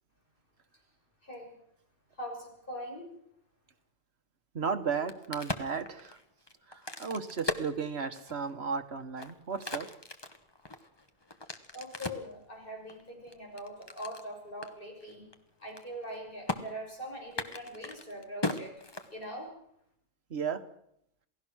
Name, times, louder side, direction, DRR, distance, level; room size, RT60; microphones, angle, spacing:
voice 1, 1.2-1.6 2.2-3.1 11.7-15.3 15.6-18.7 19.1-19.5, equal, 50° left, 0 dB, 6.7 m, -42 dB
voice 2, 4.5-6.2 6.7-9.9 20.3-20.6, right 6 dB, 65° right, 6 dB, 1.7 m, -34 dB
Crack, 4.8-8.5 9.0-12.3 12.9-14.2 14.6-14.7 15.0-15.3 15.6-16.1 16.5-16.6 17.2-19.5, left 2 dB, 20° left, 1.2 m, -38 dB
28.0 x 17.0 x 6.3 m, 0.74 s
omnidirectional pair, 1.2 m